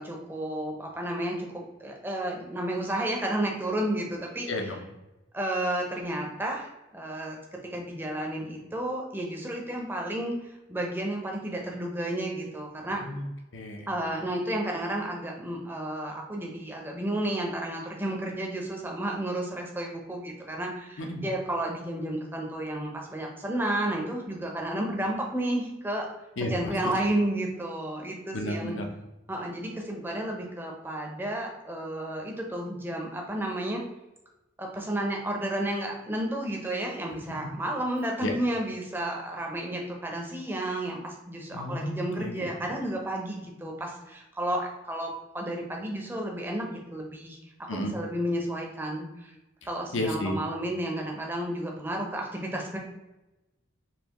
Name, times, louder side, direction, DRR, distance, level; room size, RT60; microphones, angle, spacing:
voice 1, 0.0-4.5 5.3-7.4 7.7-10.3 10.7-13.0 13.9-26.1 26.4-28.8 29.3-33.8 34.6-47.4 47.7-49.3 49.6-52.8, right 1 dB, 10° right, 0 dB, 0.6 m, -32 dB
voice 2, 4.5-4.8 13.0-13.2 13.5-13.9 21.0-21.2 26.4-26.7 28.3-28.9 38.2-38.3 41.5-42.5 47.7-47.9 49.9-50.4, left 1 dB, 75° left, 3 dB, 0.7 m, -32 dB
4.3 x 2.9 x 2.9 m, 1.0 s
head